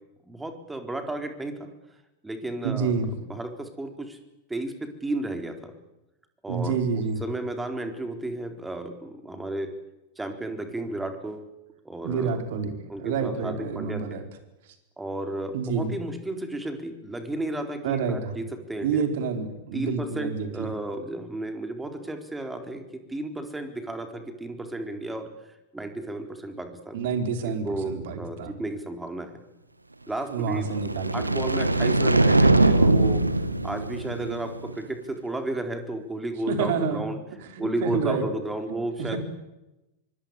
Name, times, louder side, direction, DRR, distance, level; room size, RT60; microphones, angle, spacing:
voice 1, 0.2-1.7 2.2-4.2 4.5-5.7 6.4-9.7 10.2-11.5 11.8-12.4 12.9-14.2 15.0-19.0 19.7-27.0 27.4-29.4 30.1-30.8 31.1-33.2 33.6-37.2 37.6-39.2, right 1 dB, 10° right, 6 dB, 4.1 m, -33 dB
voice 2, 2.6-3.1 6.5-7.2 12.0-12.7 13.0-14.2 15.5-16.0 17.8-18.3 18.8-20.7 26.9-28.5 30.3-31.1 36.5-37.0 37.5-38.3 39.0-39.2, right 6 dB, 55° right, 7 dB, 4.6 m, -28 dB
sound 1, 30.5-34.8, right 2 dB, 85° right, 1.6 m, -22 dB
26.5 x 23.5 x 8.3 m, 0.97 s
figure-of-eight pair, 90°, 0 cm